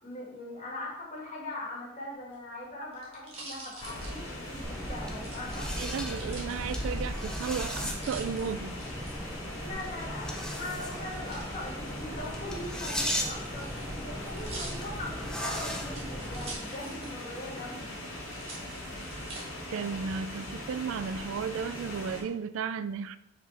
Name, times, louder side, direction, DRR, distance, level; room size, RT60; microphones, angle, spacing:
voice 1, 0.0-5.7 9.6-17.9, left 1 dB, 40° left, 2.2 m, -41 dB
sound 1, 2.2-4.7 5.2-7.2 7.6-9.1 10.9-11.5 12.4-17.3 17.6-17.7 18.3-19.4 20.0-20.6, right 2 dB, 30° right, 1.8 m, -46 dB
sound 2, 3.8-22.2, left 1 dB, 75° left, 2.5 m, -40 dB
sound 3, 4.6-16.5, equal, 5° left, 0.7 m, -37 dB
voice 2, 5.8-8.8 19.7-23.2, right 6 dB, 75° right, 0.3 m, -34 dB
6.0 x 4.7 x 4.3 m
head